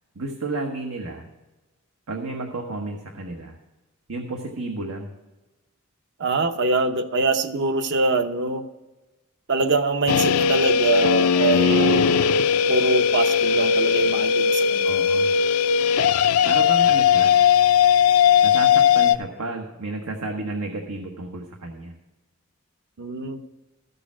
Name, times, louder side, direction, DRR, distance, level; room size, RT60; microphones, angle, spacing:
voice 1, 0.1-1.3 2.1-3.6 4.1-5.1 14.8-15.3 16.4-17.3 18.4-21.9, right 2 dB, 90° right, 2 dB, 1.2 m, -31 dB
voice 2, 6.2-8.7 9.5-12.1 12.7-14.9 23.0-23.4, right 3 dB, 55° right, 8 dB, 0.8 m, -23 dB
sound 1, 10.1-19.2, left 7 dB, 80° left, 0.4 m, -18 dB
13.5 x 6.8 x 6.1 m, 1.1 s
head